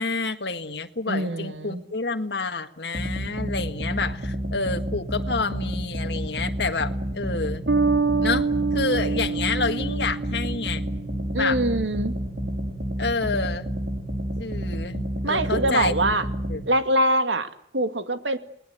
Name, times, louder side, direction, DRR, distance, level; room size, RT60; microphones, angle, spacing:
voice 1, 0.0-7.6 8.2-10.8 11.4-11.6 13.0-13.7 14.4-15.9 16.5-16.6, left 4 dB, 65° left, 6 dB, 1.8 m, -28 dB
voice 2, 1.1-1.8 11.3-12.1 15.2-16.3 16.7-18.4, right 1 dB, 85° right, 9 dB, 2.2 m, -24 dB
sound 1, 2.9-16.6, right 1 dB, 50° right, 5.2 m, -30 dB
Bass guitar, 7.7-11.2, right 4 dB, 65° right, 1.2 m, -26 dB
29.5 x 20.0 x 8.3 m, 0.70 s
head